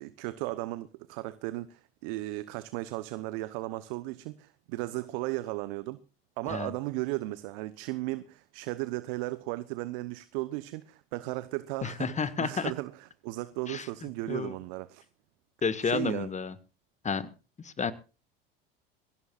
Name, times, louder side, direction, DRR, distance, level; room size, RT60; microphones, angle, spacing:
voice 1, 0.0-6.0 6.4-15.0 15.8-16.3, right 19 dB, 65° right, 1.0 m, -36 dB
voice 2, 11.8-12.7 13.7-13.9 14.3-14.5 15.6-16.6 17.0-17.3 17.6-17.9, left 5 dB, 25° left, 1.7 m, -31 dB
22.5 x 16.0 x 2.5 m
hypercardioid pair, 75°, 29 cm